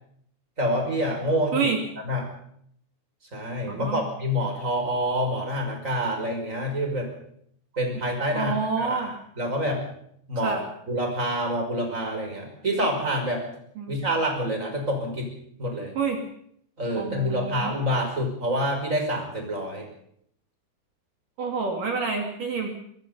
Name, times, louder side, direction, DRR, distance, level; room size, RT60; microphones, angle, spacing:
voice 1, 0.6-1.7 2.0-2.3 3.3-7.1 7.8-9.1 9.4-9.8 10.3-10.6 10.9-13.4 13.9-15.3 15.6-15.9 16.8-19.9, equal, 15° right, 3 dB, 5.8 m, -27 dB
voice 2, 3.7-4.1 8.3-9.1 10.4-10.6 13.8-14.0 16.0-16.2 16.9-17.8 21.4-22.7, right 5 dB, 55° right, 3 dB, 3.7 m, -28 dB
23.0 x 22.5 x 5.5 m, 0.68 s
omnidirectional pair, 5.0 m